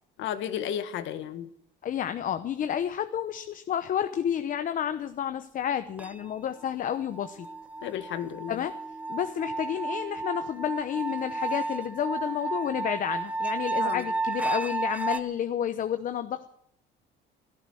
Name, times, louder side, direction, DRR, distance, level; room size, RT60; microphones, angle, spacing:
voice 1, 0.2-1.5 7.8-8.6 13.8-14.0, left 10 dB, 65° left, 9 dB, 1.7 m, -33 dB
voice 2, 1.8-7.5 8.5-8.7 9.1-16.5, left 9 dB, 40° left, 9 dB, 0.9 m, -30 dB
sound 1, 6.0-6.4 6.6-15.2, right 3 dB, 5° right, 0.9 m, -32 dB
16.0 x 14.0 x 6.3 m, 0.69 s
cardioid pair, 140°, 21 cm